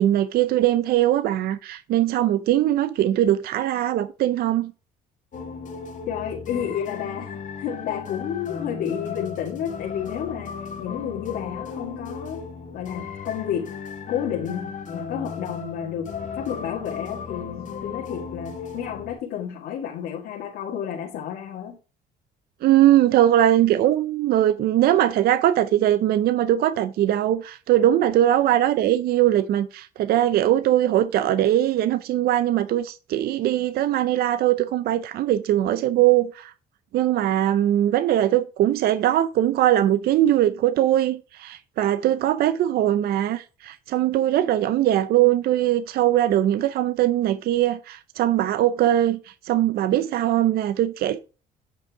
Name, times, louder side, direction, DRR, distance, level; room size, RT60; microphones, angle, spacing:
voice 1, 0.0-4.7 22.6-36.5 36.9-51.2, right 12 dB, 65° right, 0.5 m, -21 dB
sound 1, 5.3-19.1, left 6 dB, 50° left, 1.9 m, -36 dB
voice 2, 6.1-12.4 12.7-13.7 14.1-21.8, left 9 dB, 80° left, 1.9 m, -31 dB
9.0 x 5.4 x 3.6 m
cardioid pair, 110°, 17 cm